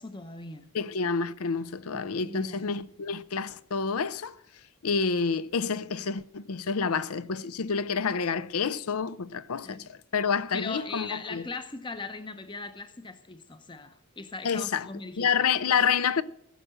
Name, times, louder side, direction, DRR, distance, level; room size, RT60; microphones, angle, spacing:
voice 1, 0.0-0.7 1.9-2.8 9.6-9.9 10.5-15.3, left 4 dB, 20° left, 0.7 m, -39 dB
voice 2, 0.7-4.3 4.8-11.5 14.4-14.9 15.2-16.2, left 5 dB, 85° left, 0.6 m, -28 dB
16.0 x 6.6 x 7.6 m
head